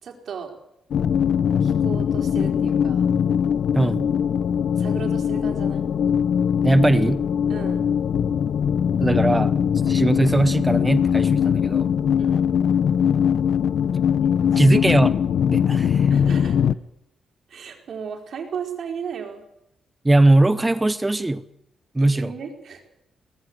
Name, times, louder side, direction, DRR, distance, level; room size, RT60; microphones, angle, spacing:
voice 1, 0.0-0.5 1.6-3.1 4.7-5.9 7.5-7.9 12.2-12.5 14.2-14.9 16.1-16.6 17.5-19.4 21.9-22.8, right 6 dB, 55° right, 2 dB, 4.6 m, -35 dB
sound 1, 0.9-16.7, left 8 dB, 65° left, 0.7 m, -21 dB
voice 2, 3.7-4.1 6.6-7.3 9.0-9.5 9.8-11.9 14.6-16.1 20.0-21.4 21.9-22.3, right 2 dB, 10° right, 14 dB, 0.7 m, -20 dB
19.0 x 14.5 x 9.8 m, 0.82 s
cardioid pair, 145°, 0 cm